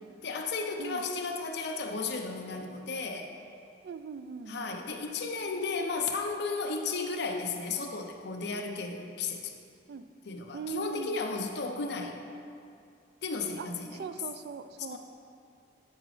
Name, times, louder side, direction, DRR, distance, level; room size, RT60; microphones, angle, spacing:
voice 1, 0.2-3.3 4.5-9.6 10.3-12.2 13.2-14.0 14.9-15.0, left 4 dB, 65° left, 4 dB, 0.7 m, -34 dB
voice 2, 3.8-4.7 9.9-10.1 10.5-11.1 13.6-15.0, right 5 dB, 60° right, 11 dB, 0.3 m, -40 dB
12.5 x 5.0 x 3.2 m, 2.4 s
head